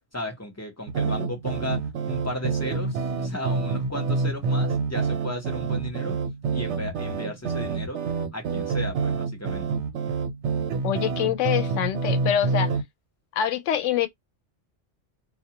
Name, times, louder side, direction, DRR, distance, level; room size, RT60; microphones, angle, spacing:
voice 1, 0.1-6.2 6.5-8.0 8.3-9.8, left 1 dB, 15° left, 0.7 m, -35 dB
sound 1, 0.9-12.8, right 4 dB, 75° right, 0.9 m, -27 dB
voice 2, 10.8-12.7 13.3-14.1, left 10 dB, 85° left, 0.9 m, -25 dB
2.3 x 2.3 x 2.8 m
omnidirectional pair, 1.2 m